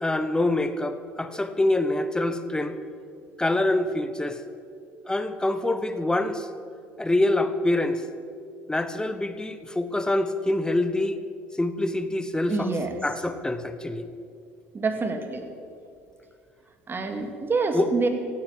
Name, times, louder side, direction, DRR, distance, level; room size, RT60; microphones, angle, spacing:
voice 1, 0.0-2.8 3.4-4.4 5.1-6.5 7.0-8.0 8.7-11.2 11.6-12.7 13.0-14.1 17.7-17.9, left 1 dB, 10° left, 10 dB, 1.2 m, -25 dB
voice 2, 12.5-12.9 14.7-15.5 16.9-18.1, right 3 dB, 30° right, 6 dB, 2.2 m, -27 dB
16.0 x 8.8 x 7.5 m, 2.4 s
hypercardioid pair, 70°, 7 cm